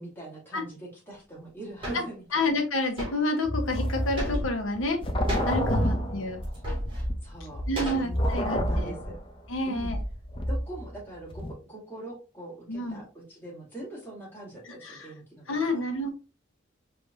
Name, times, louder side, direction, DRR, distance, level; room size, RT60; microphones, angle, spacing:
voice 1, 0.0-2.4 5.8-6.1 7.2-7.6 7.9-8.2 8.7-9.2 9.7-9.9 10.5-15.8, right 2 dB, 10° left, -6 dB, 2.4 m, -43 dB
sound 1, 1.8-2.1 3.0-3.2 4.2-4.6 5.3-5.6 6.4-7.0 7.7-8.4, equal, 25° right, 2.2 m, -34 dB
voice 2, 2.3-5.0 5.5-6.4 7.7-8.9 9.5-10.0 12.7-13.0 14.7-15.1 15.5-16.1, left 2 dB, 85° left, 4 dB, 1.1 m, -29 dB
sound 2, 3.4-11.0 11.3-11.5, equal, 25° left, 0.6 m, -29 dB
4.9 x 3.4 x 2.7 m, 0.34 s
head